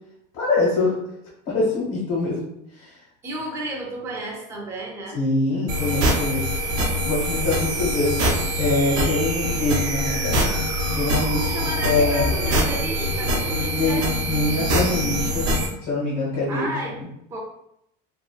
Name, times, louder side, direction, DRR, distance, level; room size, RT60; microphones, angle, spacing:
voice 1, 0.3-0.9 1.5-2.4 2.8-3.0 5.1-6.6 7.0-8.1 8.6-10.4 10.9-11.5 11.8-12.3 13.7-15.5 15.8-17.0, left 2 dB, 75° left, -7 dB, 1.3 m, -24 dB
voice 2, 3.2-5.2 11.4-14.1 16.5-17.0 17.3-17.4, right 1 dB, 15° right, -2 dB, 0.3 m, -32 dB
sound 1, 5.7-15.7, equal, 60° right, 0.7 m, -24 dB
2.7 x 2.3 x 2.3 m, 0.78 s
cardioid pair, 180°, 21 cm